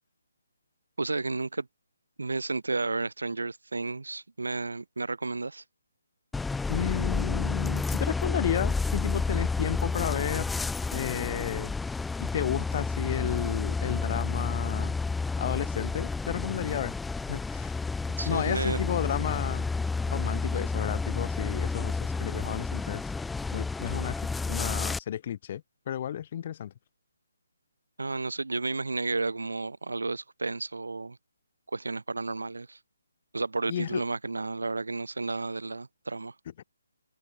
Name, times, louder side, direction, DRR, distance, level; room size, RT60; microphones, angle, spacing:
voice 1, 1.0-1.7 2.2-5.6 18.2-18.8 28.0-31.2 31.7-32.8 33.3-36.3, right 3 dB, 70° right, 5.1 m, -32 dB
sound 1, 6.3-25.0, left 4 dB, 5° left, 2.2 m, -30 dB
voice 2, 6.7-10.5 10.9-11.7 12.2-14.9 15.4-16.9 17.3-17.8 18.2-19.7 20.1-23.0 23.5-26.7 33.7-34.0, left 10 dB, 40° left, 2.0 m, -32 dB
open air
figure-of-eight pair, 145°, 0 cm